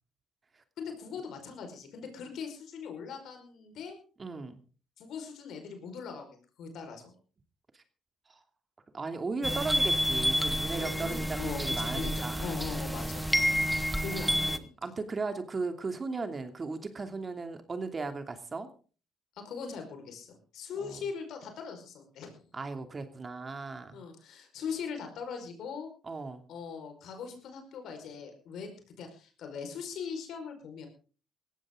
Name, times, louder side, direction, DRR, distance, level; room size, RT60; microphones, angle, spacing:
voice 1, 0.8-3.9 5.0-7.1 10.7-13.3 14.0-14.9 19.3-22.4 23.9-25.9 26.5-30.9, left 6 dB, 65° left, 5 dB, 5.0 m, -40 dB
voice 2, 4.2-4.6 7.7-7.8 8.3-8.4 8.9-12.6 14.1-18.7 20.8-21.0 22.5-24.0 26.0-26.4, right 3 dB, 35° right, 8 dB, 2.7 m, -37 dB
sound 1, 9.4-14.6, equal, ahead, 1.5 m, -29 dB
18.0 x 15.0 x 3.8 m, 0.38 s
hypercardioid pair, 60°, 0 cm